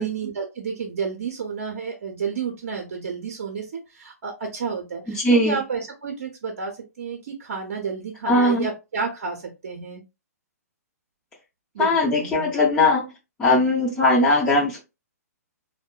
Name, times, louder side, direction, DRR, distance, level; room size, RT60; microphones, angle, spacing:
voice 1, 0.0-10.0 11.7-12.5, right 5 dB, 50° right, 0.7 m, -31 dB
voice 2, 5.2-5.6 8.3-8.7 11.8-13.1 13.4-14.8, left 2 dB, 10° left, 0.5 m, -19 dB
3.5 x 2.1 x 2.2 m
figure-of-eight pair, 120°, 9 cm